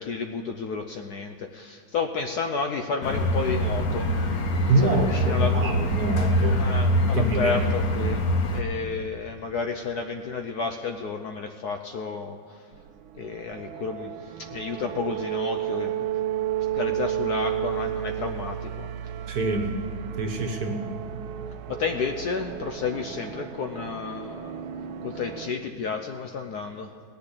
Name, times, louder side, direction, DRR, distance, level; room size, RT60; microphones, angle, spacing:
voice 1, 0.0-4.1 4.8-5.6 6.5-8.2 8.5-12.6 13.1-16.1 16.7-18.9 21.7-24.7 25.0-26.9, left 5 dB, 65° left, 6 dB, 1.0 m, -31 dB
sound 1, 3.0-8.6, equal, 50° left, 1.4 m, -24 dB
voice 2, 4.7-6.6 6.9-7.6 19.3-19.7 20.2-20.8, right 2 dB, 55° right, 4 dB, 1.5 m, -25 dB
sound 2, 12.7-25.5, right 11 dB, 80° right, 1.4 m, -32 dB
17.5 x 6.8 x 9.7 m, 2.2 s
omnidirectional pair, 2.2 m